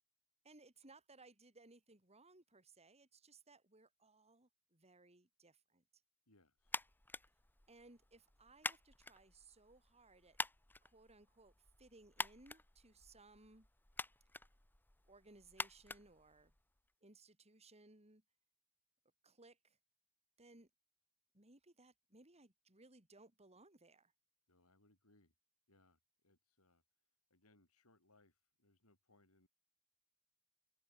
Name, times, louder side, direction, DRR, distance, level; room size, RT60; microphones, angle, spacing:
voice 1, 0.4-6.0 7.7-10.4 10.8-13.7 15.1-16.5 17.0-18.2 19.2-19.8 20.4-20.7 21.3-24.1, right 2 dB, 30° right, 5.7 m, -64 dB
voice 2, 6.3-6.8 24.5-25.3 25.7-26.8 27.3-29.5, left 2 dB, 85° left, 7.8 m, -73 dB
sound 1, 6.7-16.9, left 2 dB, 10° left, 1.2 m, -48 dB
open air
head